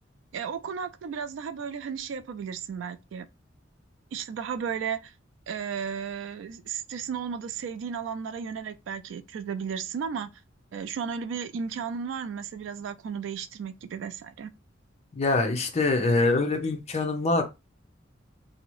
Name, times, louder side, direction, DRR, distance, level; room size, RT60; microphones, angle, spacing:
voice 1, 0.3-3.3 4.1-5.1 5.5-10.3 10.7-14.5, right 6 dB, 75° right, 0.3 m, -34 dB
voice 2, 15.1-17.4, left 3 dB, 35° left, 0.5 m, -24 dB
2.7 x 2.0 x 2.9 m
head